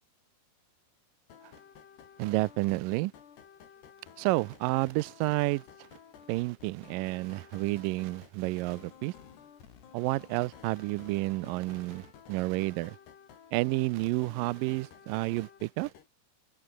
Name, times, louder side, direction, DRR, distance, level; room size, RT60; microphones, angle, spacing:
sound 1, 1.3-16.1, left 8 dB, 75° left, 5.5 m, -54 dB
voice 1, 2.2-3.1 4.2-5.6 6.3-9.1 9.9-13.0 13.5-15.9, right 21 dB, 90° right, 1.9 m, -30 dB
omnidirectional pair, 4.7 m